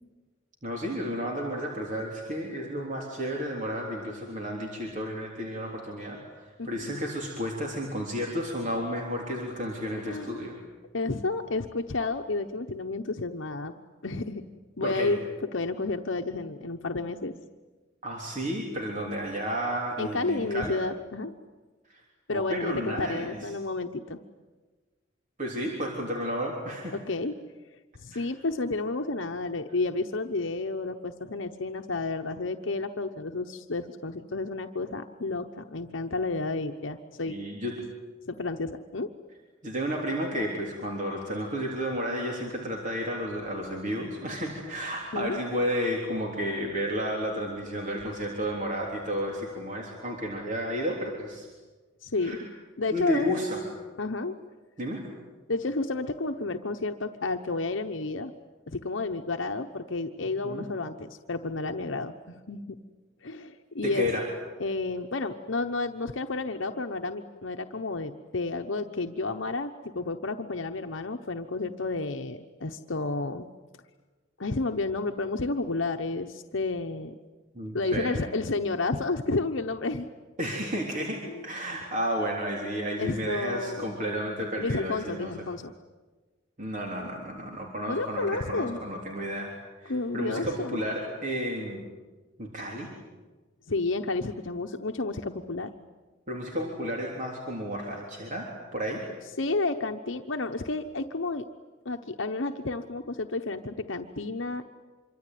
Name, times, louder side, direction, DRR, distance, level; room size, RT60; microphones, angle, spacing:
voice 1, 0.6-10.6 14.8-15.1 18.0-20.8 21.9-22.0 22.3-23.5 25.4-27.0 28.1-28.2 37.3-37.8 39.6-51.5 52.2-52.4 52.9-53.6 54.8-55.0 60.4-60.7 63.8-64.3 77.5-78.3 80.4-85.3 86.6-89.5 89.8-91.8 92.4-92.9 96.3-99.0, equal, 40° right, 0 dB, 3.6 m, -32 dB
voice 2, 6.6-7.0 10.0-10.3 10.9-13.7 14.0-14.4 14.8-15.2 15.5-17.3 20.0-21.3 22.3-24.2 27.1-27.3 28.0-37.4 38.3-39.1 45.1-45.4 52.0-52.4 52.8-53.3 54.0-54.4 55.5-58.3 58.7-62.8 63.2-64.1 64.6-73.5 74.4-77.1 77.7-80.1 81.3-81.5 83.0-83.9 84.6-85.7 87.9-88.8 89.9-90.8 93.7-95.7 99.4-101.4 101.8-104.6, left 3 dB, 70° left, 5 dB, 1.0 m, -31 dB
26.0 x 24.0 x 9.4 m, 1.3 s
head